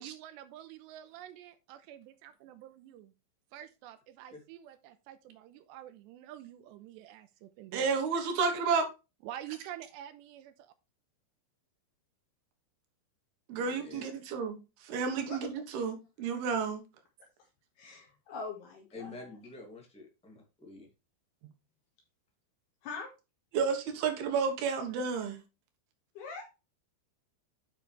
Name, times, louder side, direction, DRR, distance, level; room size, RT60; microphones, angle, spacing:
voice 1, 0.0-3.1 3.5-7.9 9.2-10.7, right 12 dB, 85° right, 3.0 m, -47 dB
voice 2, 7.7-8.9 13.5-14.6 14.8-16.8 23.5-25.4, right 5 dB, 70° right, 3.1 m, -31 dB
voice 3, 13.5-14.0 18.9-20.9, left 3 dB, 5° left, 0.6 m, -48 dB
voice 4, 17.8-19.2 22.8-23.1 26.2-26.4, left 4 dB, 70° left, 3.6 m, -42 dB
9.5 x 6.0 x 3.3 m
omnidirectional pair, 5.0 m